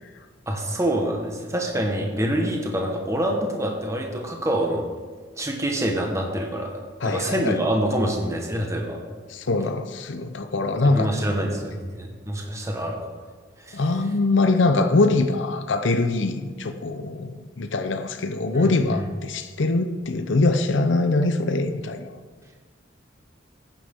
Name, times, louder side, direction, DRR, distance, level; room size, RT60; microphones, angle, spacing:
voice 1, 0.5-4.8 5.4-6.7 7.0-9.0 10.9-13.1 13.6-13.8 18.5-18.7, right 1 dB, 15° right, 1 dB, 1.4 m, -26 dB
voice 2, 7.0-7.6 9.3-11.1 13.7-22.1, left 2 dB, 70° left, 8 dB, 0.7 m, -23 dB
14.5 x 10.0 x 3.7 m, 1.5 s
head